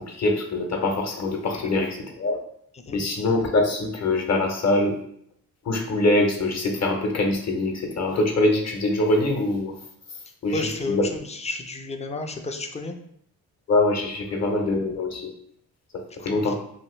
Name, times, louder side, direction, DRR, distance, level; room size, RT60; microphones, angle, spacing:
voice 1, 0.0-2.4 2.9-5.0 5.7-9.7 10.4-11.0 13.7-15.3 16.2-16.5, left 2 dB, 45° left, 2 dB, 0.7 m, -23 dB
voice 2, 10.5-13.0 16.2-16.5, left 3 dB, 20° left, 5 dB, 0.3 m, -32 dB
2.8 x 2.3 x 3.1 m, 0.68 s
cardioid pair, 80°, 38 cm